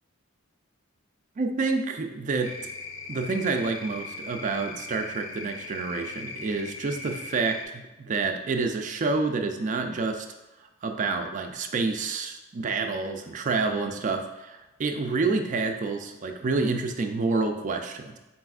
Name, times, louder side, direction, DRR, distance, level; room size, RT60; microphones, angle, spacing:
voice 1, 1.4-2.5 3.1-10.3 10.8-18.2, right 4 dB, 40° right, 5 dB, 0.3 m, -28 dB
sound 1, 2.4-7.7, left 3 dB, 65° left, 0.4 m, -40 dB
4.1 x 3.9 x 2.3 m, 1.1 s
head